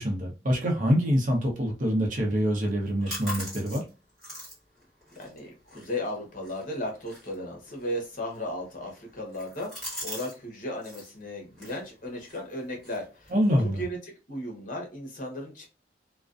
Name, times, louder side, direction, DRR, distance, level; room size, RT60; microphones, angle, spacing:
voice 1, 0.0-3.8 13.3-13.8, equal, 45° right, 0.7 m, -25 dB
sound 1, 2.6-10.4 10.6-11.1 11.5-13.9, equal, ahead, 1.4 m, -43 dB
voice 2, 5.2-13.3 13.6-14.0 14.3-15.7, left 1 dB, 45° left, 0.9 m, -35 dB
2.5 x 2.2 x 2.4 m
head